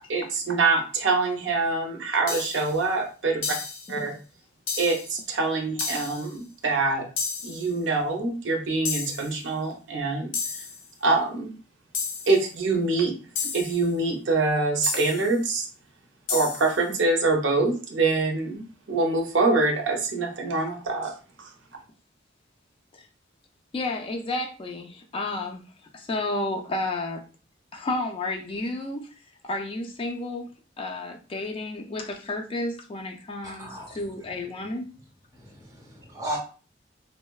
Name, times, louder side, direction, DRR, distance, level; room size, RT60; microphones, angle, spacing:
voice 1, 0.1-3.4 3.9-4.1 4.8-7.1 7.4-10.3 11.0-11.5 12.3-13.1 13.5-15.6 16.3-18.6 18.9-21.1, right 3 dB, 70° right, 2 dB, 0.6 m, -25 dB
sound 1, 2.3-2.8 3.4-4.0 4.7-5.2 5.8-6.3 7.2-7.7 8.9-9.4 10.3-10.9 11.9-12.4 13.4-13.9 14.8-15.3 16.3-16.8, left 5 dB, 80° left, 0.5 m, -32 dB
voice 2, 23.7-25.6 25.9-27.2 27.7-29.0 29.4-30.4 30.8-33.7 34.0-34.9, left 2 dB, 30° left, 3 dB, 0.3 m, -31 dB
voice 3, 33.4-34.3 35.3-36.4, right 1 dB, 20° right, 0 dB, 0.6 m, -36 dB
3.0 x 2.0 x 2.2 m, 0.36 s
head